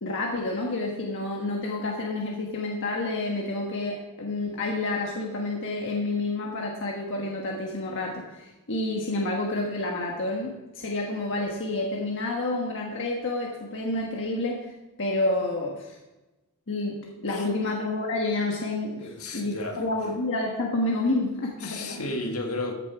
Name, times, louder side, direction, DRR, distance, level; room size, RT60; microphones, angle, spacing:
voice 1, 0.0-14.7 15.0-15.9 16.7-22.0, left 2 dB, 60° left, -1 dB, 1.4 m, -29 dB
voice 2, 19.0-19.8 21.6-22.7, left 2 dB, 75° left, 3 dB, 1.8 m, -33 dB
14.0 x 6.8 x 4.7 m, 1.1 s
head